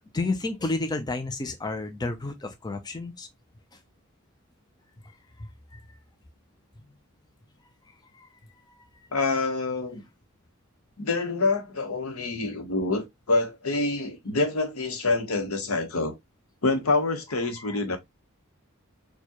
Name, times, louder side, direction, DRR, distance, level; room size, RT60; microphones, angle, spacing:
voice 1, 0.1-3.3 5.4-5.8 8.1-8.3 17.6-18.0, left 2 dB, 20° left, 0.5 m, -31 dB
voice 2, 9.1-10.0 11.0-16.1 16.6-18.0, left 3 dB, 80° left, 1.0 m, -26 dB
4.4 x 2.3 x 2.9 m
head